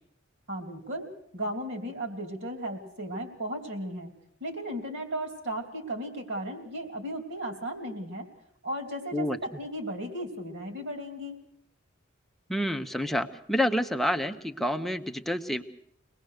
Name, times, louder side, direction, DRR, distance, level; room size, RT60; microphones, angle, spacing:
voice 1, 0.5-4.1 4.4-8.3 8.6-11.4, right 1 dB, 60° right, 4 dB, 3.2 m, -35 dB
voice 2, 12.5-15.6, equal, ahead, 6 dB, 0.8 m, -28 dB
23.5 x 19.5 x 6.5 m, 0.70 s
head